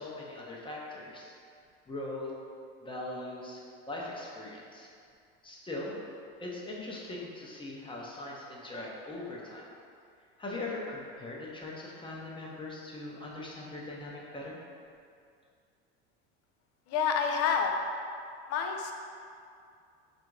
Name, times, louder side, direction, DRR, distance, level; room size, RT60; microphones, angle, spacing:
voice 1, 0.0-1.3 1.9-2.3 2.8-4.9 5.4-6.0 6.4-9.7 10.4-14.6, left 2 dB, 15° left, -4 dB, 0.8 m, -40 dB
voice 2, 16.9-17.7 18.5-18.9, left 6 dB, 55° left, 3 dB, 0.6 m, -28 dB
3.5 x 2.6 x 4.5 m, 2.4 s
supercardioid pair, 105°, 30 cm